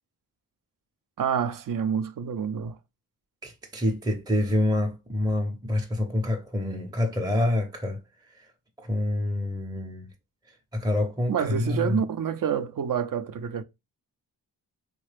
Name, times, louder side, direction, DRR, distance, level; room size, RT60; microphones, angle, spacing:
voice 1, 1.2-2.8 11.3-13.6, right 7 dB, 50° right, 0.5 m, -28 dB
voice 2, 3.4-8.0 8.3-8.5 8.8-10.1 10.7-12.0, left 1 dB, 10° right, 0.6 m, -27 dB
3.2 x 2.2 x 3.2 m
cardioid pair, 45°, 41 cm